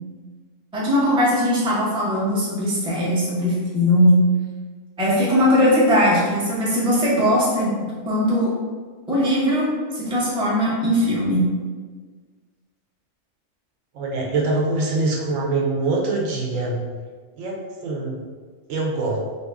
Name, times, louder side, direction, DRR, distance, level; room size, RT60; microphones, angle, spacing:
voice 1, 0.7-4.2 5.0-7.7 8.0-8.5 9.1-9.7 9.9-11.5, equal, 5° right, -7 dB, 0.5 m, -19 dB
voice 2, 13.9-16.8 17.4-17.6 17.8-18.2 18.7-19.2, right 3 dB, 80° right, -1 dB, 1.0 m, -23 dB
2.7 x 2.7 x 3.4 m, 1.5 s
omnidirectional pair, 1.4 m